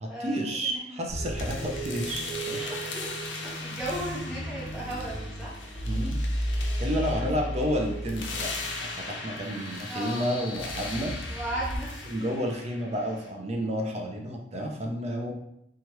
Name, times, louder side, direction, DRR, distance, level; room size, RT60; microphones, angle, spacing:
voice 1, 0.0-2.6 5.8-6.2 6.8-8.5 8.8-11.1 12.1-15.3, equal, 35° right, 1 dB, 0.5 m, -31 dB
voice 2, 0.6-1.0 1.4-1.9 2.5-5.6 7.0-7.5 9.9-10.3 11.2-12.3, right 1 dB, 5° right, -9 dB, 1.1 m, -37 dB
sound 1, 1.1-11.8, right 1 dB, 85° right, 0.7 m, -34 dB
sound 2, 1.4-13.3, left 3 dB, 75° left, 0.5 m, -40 dB
2.9 x 2.3 x 3.0 m, 0.77 s
head